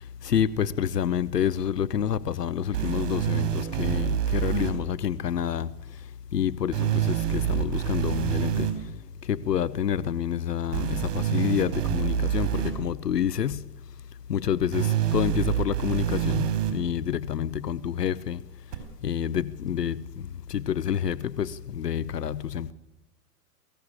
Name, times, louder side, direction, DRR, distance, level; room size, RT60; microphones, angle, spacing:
voice 1, 0.0-8.9 9.2-13.7 14.3-18.4 19.0-22.7, left 9 dB, 85° left, 0.8 m, -28 dB
sound 1, 2.7-4.7 6.7-8.7 10.7-12.7 14.7-16.7 18.7-18.8, right 11 dB, 55° right, 4.9 m, -26 dB
22.0 x 16.5 x 8.8 m
hypercardioid pair, 100°, 47 cm